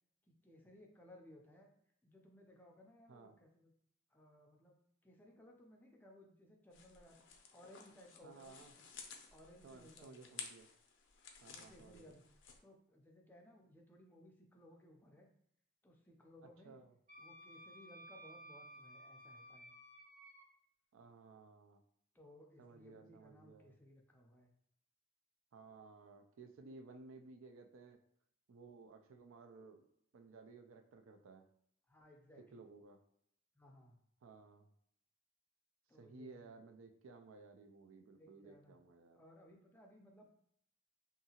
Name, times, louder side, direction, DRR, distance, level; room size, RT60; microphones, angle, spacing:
voice 1, 0.3-1.7 2.0-3.7 4.1-8.9 9.3-10.4 11.5-12.2 12.6-15.3 15.8-16.8 17.2-19.7 22.1-24.5 31.9-32.7 33.5-34.0 35.9-36.5 38.1-38.8 39.1-40.3, left 1 dB, 10° left, 0 dB, 0.4 m, -62 dB
sound 1, 6.7-12.6, left 6 dB, 70° left, 0.4 m, -55 dB
voice 2, 8.2-8.7 9.6-10.7 11.4-12.2 16.6-16.9 20.9-21.8 22.6-23.7 25.5-28.0 28.5-29.8 30.1-31.5 32.5-33.0 34.2-34.7 35.9-39.2, right 3 dB, 90° right, 6 dB, 0.4 m, -57 dB
Wind instrument woodwind instrument, 17.1-20.4, right 1 dB, 45° right, 0.6 m, -56 dB
2.7 x 2.4 x 2.8 m, 0.71 s
head